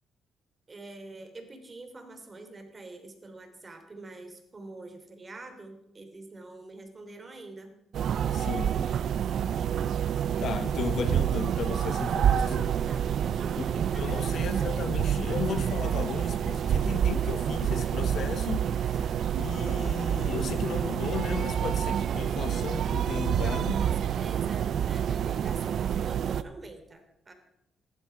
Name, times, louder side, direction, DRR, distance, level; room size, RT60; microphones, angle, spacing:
voice 1, 0.7-7.7 12.9-14.2 23.4-27.3, right 2 dB, 30° right, 3.2 m, -45 dB
sound 1, 7.9-26.4, right 9 dB, 65° right, 0.5 m, -28 dB
voice 2, 8.3-8.8 10.4-12.6 13.6-13.7 14.0-23.8, left 7 dB, 60° left, 0.9 m, -35 dB
15.0 x 12.0 x 5.9 m
cardioid pair, 90°, 0 cm